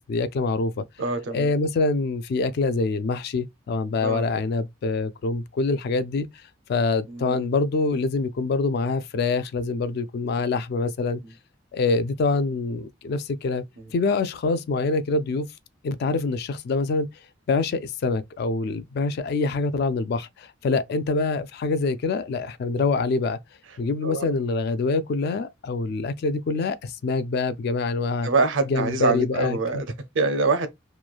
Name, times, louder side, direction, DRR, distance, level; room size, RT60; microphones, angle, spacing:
voice 1, 0.0-0.8 1.3-6.3 6.7-11.2 11.7-13.6 13.9-15.5 15.8-17.1 17.5-23.4 23.8-28.3 28.7-29.8, left 3 dB, 55° left, 0.3 m, -25 dB
voice 2, 1.0-1.5 4.0-4.2 7.1-7.5 11.2-11.3 13.8-13.9 24.0-24.3 28.2-30.7, right 3 dB, 75° right, 0.5 m, -25 dB
3.0 x 2.2 x 2.3 m
head